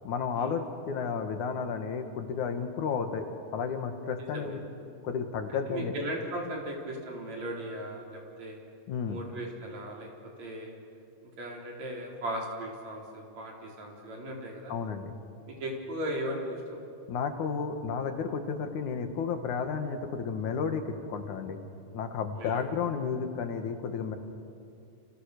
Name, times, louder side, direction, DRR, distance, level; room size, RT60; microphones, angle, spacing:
voice 1, 0.0-3.3 3.5-4.6 5.0-5.9 8.9-9.2 14.7-15.1 17.1-21.6 21.9-24.2, left 6 dB, 85° left, 6 dB, 3.2 m, -32 dB
voice 2, 4.2-4.6 5.7-8.6 9.0-10.1 10.4-10.7 11.2-14.7 15.5-16.8 22.4-22.6, right 1 dB, 65° right, -1 dB, 5.5 m, -37 dB
29.5 x 29.0 x 6.7 m, 2.6 s
omnidirectional pair, 3.4 m